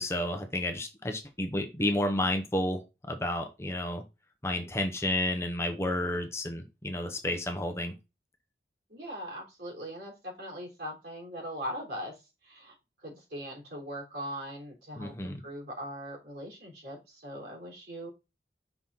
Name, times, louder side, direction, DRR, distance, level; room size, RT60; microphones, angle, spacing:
voice 1, 0.0-2.8 3.1-4.0 4.4-7.9 15.0-15.4, left 1 dB, 15° left, 5 dB, 0.8 m, -31 dB
voice 2, 8.9-12.1 12.4-12.7 13.0-18.1, equal, 70° right, -1 dB, 3.5 m, -40 dB
5.9 x 4.1 x 5.5 m, 0.26 s
head